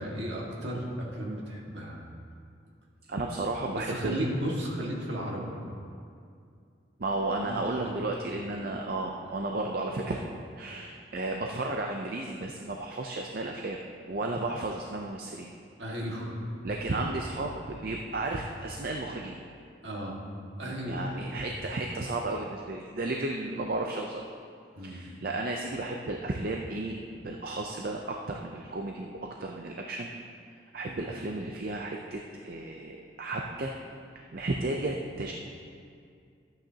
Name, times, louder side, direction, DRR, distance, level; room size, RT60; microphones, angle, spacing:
voice 1, 0.0-2.0 3.7-5.6 7.4-7.9 8.3-8.4 15.8-16.4 19.8-20.2 20.6-21.5 24.7-25.0, equal, 65° right, -2 dB, 1.8 m, -34 dB
voice 2, 3.1-4.2 7.0-10.3 10.6-13.8 14.1-15.5 16.6-19.4 20.9-24.2 24.8-27.0 27.2-30.1 30.7-33.7 34.3-35.3, right 2 dB, 50° right, 1 dB, 0.5 m, -33 dB
13.5 x 8.9 x 2.8 m, 2.4 s
head